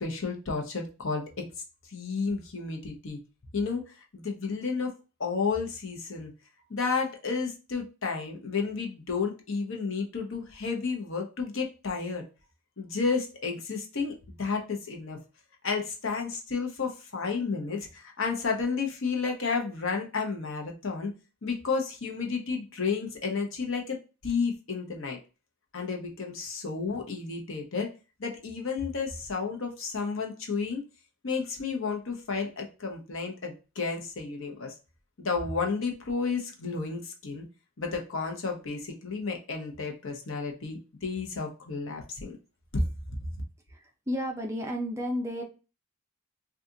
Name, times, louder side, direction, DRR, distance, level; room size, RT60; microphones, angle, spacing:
voice 1, 0.0-1.4 1.9-3.2 3.5-4.9 5.2-6.3 6.7-12.2 12.8-15.2 15.6-21.1 21.4-24.0 24.2-25.2 25.7-27.9 28.2-30.8 31.2-34.7 35.2-37.4 37.8-42.4 42.7-42.8, left 4 dB, 60° left, 2 dB, 0.8 m, -32 dB
voice 2, 43.7-45.4, equal, 15° right, 0 dB, 0.5 m, -32 dB
3.6 x 2.4 x 2.7 m, 0.31 s
head